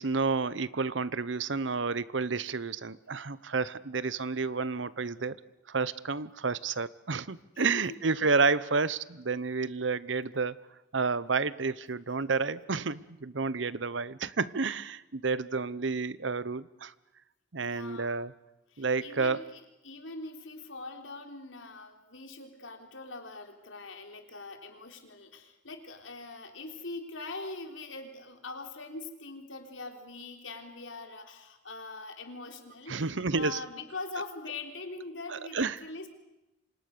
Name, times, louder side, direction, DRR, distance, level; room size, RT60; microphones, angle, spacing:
voice 1, 0.0-5.4 5.7-10.5 10.9-16.9 17.5-18.3 18.8-19.4 32.9-33.6 35.3-35.8, right 4 dB, 75° right, 18 dB, 0.9 m, -30 dB
voice 2, 7.5-8.1 17.6-18.1 18.7-36.1, left 3 dB, 85° left, 4 dB, 3.8 m, -42 dB
28.5 x 26.0 x 6.8 m, 0.94 s
head